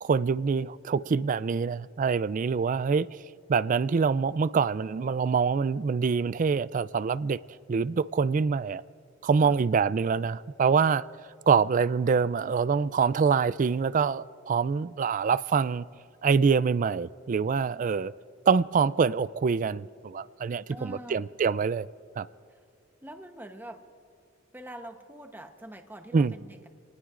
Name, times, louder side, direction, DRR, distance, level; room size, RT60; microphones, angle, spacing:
voice 1, 0.0-3.2 3.5-7.4 7.7-8.8 9.2-11.1 11.5-15.9 16.2-18.1 18.5-21.9 22.2-22.3 26.1-26.3, right 5 dB, 40° right, 0.3 m, -25 dB
voice 2, 20.7-21.3 23.0-23.8 24.5-26.7, right 1 dB, 10° right, 0.9 m, -44 dB
28.5 x 19.5 x 2.5 m
head